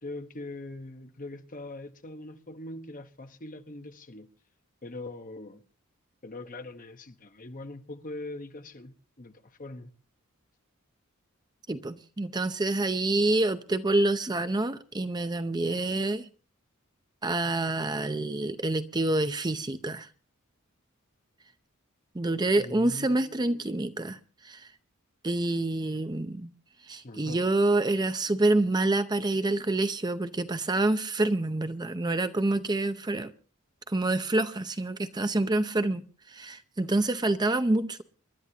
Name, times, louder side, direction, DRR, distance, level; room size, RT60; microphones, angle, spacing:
voice 1, 0.0-4.3 4.8-5.6 6.2-9.9 22.6-23.6 27.0-27.4, left 2 dB, 40° left, 1.1 m, -42 dB
voice 2, 11.7-16.3 17.2-20.1 22.1-24.2 24.4-24.7 25.2-26.5 26.9-33.3 33.9-36.0 36.3-38.0, right 2 dB, 20° right, 0.6 m, -27 dB
28.5 x 11.5 x 2.9 m
head